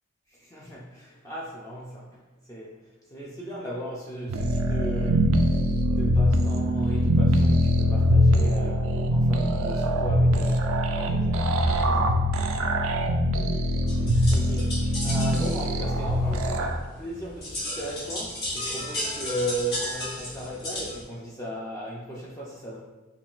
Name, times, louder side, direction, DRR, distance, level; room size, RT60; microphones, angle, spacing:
voice 1, 0.3-2.2 2.5-2.8 3.1-5.3 5.9-10.7 11.0-12.3 14.3-22.8, equal, 15° left, -5 dB, 0.4 m, -36 dB
sound 1, 4.3-16.8, equal, 90° right, 0.4 m, -23 dB
sound 2, 13.9-21.0, left 1 dB, 55° left, 1.4 m, -35 dB
5.5 x 2.5 x 2.4 m, 1.1 s
head